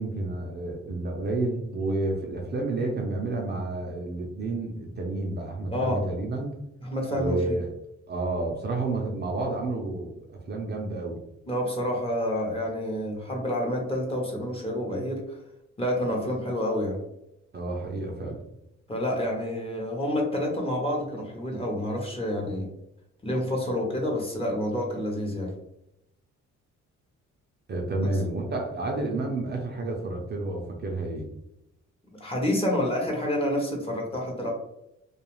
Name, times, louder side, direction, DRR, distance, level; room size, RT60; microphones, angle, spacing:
voice 1, 0.0-6.5 7.1-7.7 8.1-10.1 10.5-11.2 17.5-18.4 27.7-31.3, right 2 dB, 35° right, 0 dB, 0.5 m, -30 dB
voice 2, 5.7-6.0 6.8-7.6 11.5-15.4 15.8-17.0 18.9-22.7 23.2-25.5 32.2-34.5, left 1 dB, 20° left, -1 dB, 0.8 m, -28 dB
2.3 x 2.3 x 3.0 m, 0.83 s
cardioid pair, 90°, 30 cm